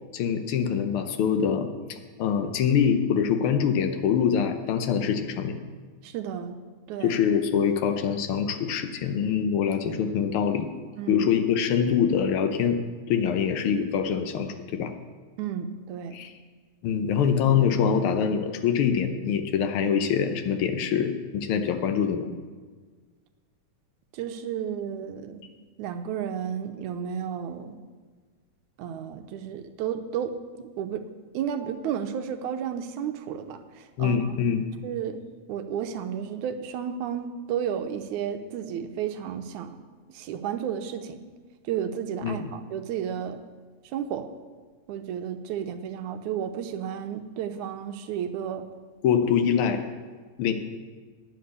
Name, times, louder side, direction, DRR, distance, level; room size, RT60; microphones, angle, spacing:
voice 1, 0.1-1.7 2.2-5.6 7.0-10.7 11.1-12.8 13.1-14.9 16.1-16.3 16.8-22.3 34.0-34.6 42.2-42.5 49.0-49.8 50.4-50.5, left 7 dB, 80° left, 7 dB, 1.2 m, -24 dB
voice 2, 6.0-6.5 6.9-7.2 11.0-11.3 15.4-16.2 24.1-25.4 25.8-27.8 28.8-30.3 30.6-31.0 31.3-34.3 34.8-35.2 35.5-39.7 40.1-41.2 41.6-43.4 43.8-44.3 44.9-48.7, right 8 dB, 85° right, 8 dB, 2.2 m, -32 dB
10.5 x 7.6 x 8.1 m, 1.5 s
omnidirectional pair, 3.4 m